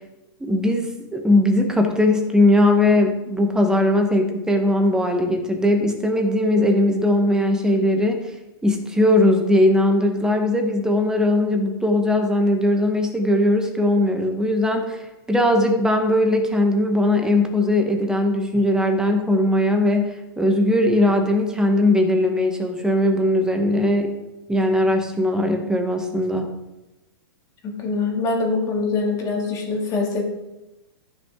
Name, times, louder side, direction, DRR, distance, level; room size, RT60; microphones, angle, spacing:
voice 1, 0.4-8.2 8.6-24.1 24.5-26.5, left 1 dB, 5° right, 4 dB, 1.0 m, -19 dB
voice 2, 27.6-30.2, left 3 dB, 25° left, 0 dB, 2.2 m, -24 dB
13.0 x 6.1 x 3.7 m, 1.0 s
hypercardioid pair, 150°, 13 cm